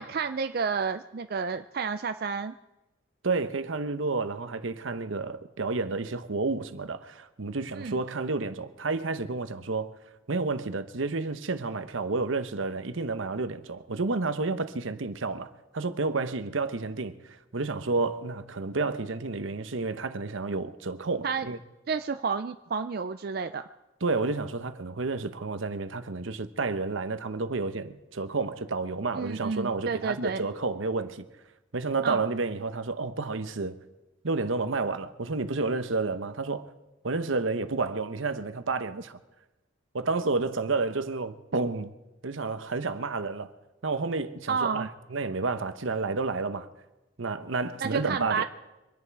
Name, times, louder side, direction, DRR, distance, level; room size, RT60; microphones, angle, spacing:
voice 1, 0.0-2.5 7.7-8.0 21.2-21.5 21.9-23.6 29.1-30.5 32.0-32.2 44.5-44.9 47.8-48.4, right 5 dB, 50° right, 0.4 m, -30 dB
voice 2, 3.2-9.9 10.3-17.1 17.5-21.6 24.0-31.2 31.7-33.8 34.2-36.7 37.0-39.2 39.9-41.9 42.2-43.5 43.8-46.7 47.2-48.4, right 3 dB, 75° right, 0.9 m, -30 dB
25.0 x 10.0 x 4.7 m
head